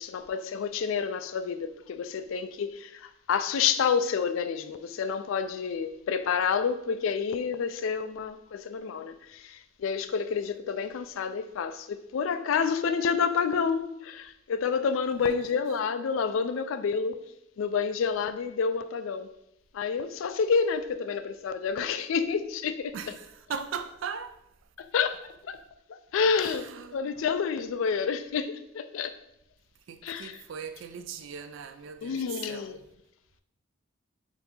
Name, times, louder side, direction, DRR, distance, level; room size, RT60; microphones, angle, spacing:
voice 1, 0.0-17.2 17.6-19.3 19.7-23.1 24.8-25.6 25.9-29.1 30.0-30.4 32.0-32.8, left 6 dB, 75° left, 0.3 m, -29 dB
voice 2, 22.9-24.4 26.4-27.0 29.9-32.7, right 6 dB, 70° right, 0.4 m, -39 dB
4.4 x 2.7 x 4.0 m
head